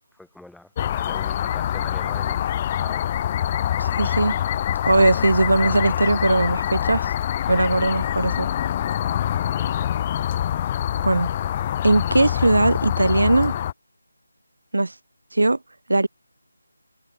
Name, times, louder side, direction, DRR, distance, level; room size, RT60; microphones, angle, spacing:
voice 1, 0.1-3.0 7.4-7.7, left 2 dB, ahead, 3.9 m, -45 dB
sound 1, 0.8-13.7, left 10 dB, 20° left, 0.4 m, -25 dB
voice 2, 3.8-4.3 4.9-7.1 7.5-8.5 11.0-11.3 11.8-13.5 14.7-14.9 15.3-15.6 15.9-16.1, right 2 dB, 85° right, 0.9 m, -19 dB
figure-of-eight pair, 170°, 0 cm